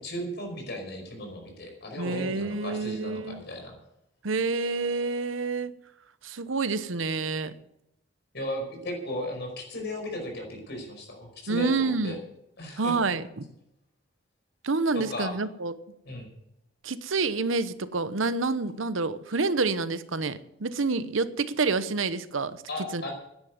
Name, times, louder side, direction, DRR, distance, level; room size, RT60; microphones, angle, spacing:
voice 1, 0.0-3.8 8.3-12.2 12.6-13.0 14.9-15.3 16.0-16.3 22.7-23.1, left 1 dB, 60° left, 5.1 m, -36 dB
voice 2, 2.0-3.4 4.2-5.8 6.2-7.5 11.5-12.2 12.8-13.5 14.6-15.7 16.8-22.6 22.9-23.0, right 3 dB, 90° right, 0.9 m, -28 dB
10.5 x 10.0 x 9.5 m
head